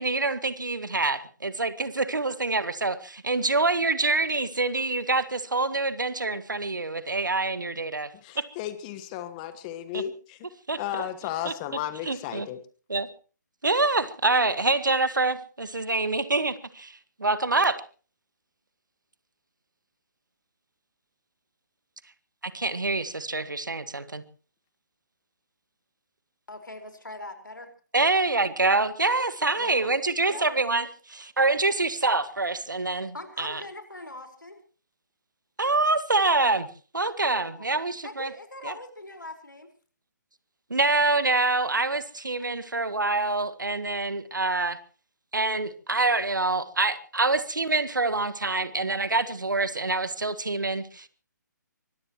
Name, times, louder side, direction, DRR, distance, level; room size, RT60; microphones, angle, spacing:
voice 1, 0.0-8.4 9.9-10.0 10.7-11.0 11.5-11.6 12.0-12.5 12.9-13.1 13.6-17.8 22.4-24.2 27.9-33.6 35.6-36.7 36.9-38.3 38.7-38.8 40.7-44.8 45.3-51.1, right 3 dB, 80° right, 1.7 m, -26 dB
voice 2, 8.2-10.4 10.8-12.6, left 11 dB, 25° left, 1.4 m, -34 dB
voice 3, 26.5-27.7 29.6-29.9 30.2-30.6 33.1-34.6 37.3-37.7 38.0-39.7, left 2 dB, 85° left, 4.8 m, -41 dB
24.0 x 18.0 x 3.1 m
figure-of-eight pair, 140°, 10 cm